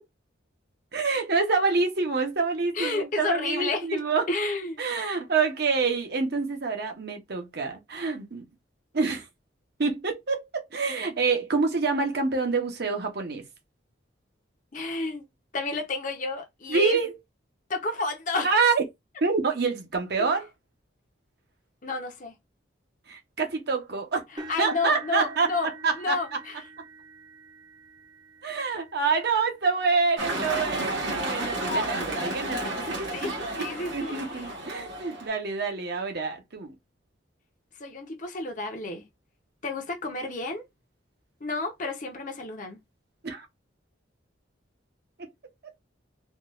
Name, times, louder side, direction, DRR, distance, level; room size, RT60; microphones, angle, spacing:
voice 1, 0.9-4.3 4.8-8.4 8.9-9.3 9.8-13.4 16.7-17.1 18.4-18.8 19.2-20.5 23.1-24.2 24.6-26.2 28.4-36.7 43.2-43.5, right 4 dB, 55° right, 0.8 m, -27 dB
voice 2, 2.7-4.0 4.3-4.8 14.7-15.3 15.5-17.0 17.7-18.5 21.8-22.3 24.5-25.7 26.0-26.6 33.0-34.4 37.8-39.0 39.6-40.6 41.4-42.8, left 3 dB, 40° left, 0.7 m, -31 dB
sound 1, 24.4-32.4 33.0-33.3 33.7-33.8 35.2-35.3, right 3 dB, 25° right, 0.6 m, -48 dB
sound 2, 30.2-35.3, right 1 dB, 75° right, 1.3 m, -31 dB
3.7 x 2.3 x 2.4 m
head